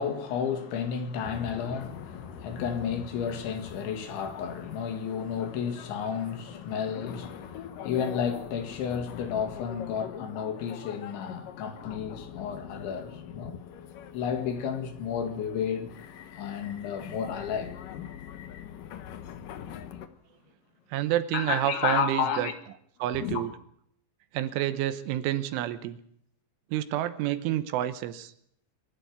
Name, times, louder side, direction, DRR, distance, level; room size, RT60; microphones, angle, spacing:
voice 1, 0.0-13.6 14.1-15.9 16.4-17.7 21.3-22.5 23.1-23.4, left 7 dB, 70° left, 4.2 m, -32 dB
sound 1, 1.2-20.1, left 9 dB, 85° left, 1.9 m, -44 dB
voice 2, 20.9-22.5 23.0-23.5 24.3-26.0 26.7-28.3, right 13 dB, 80° right, 3.4 m, -29 dB
23.5 x 12.0 x 9.5 m
omnidirectional pair, 5.7 m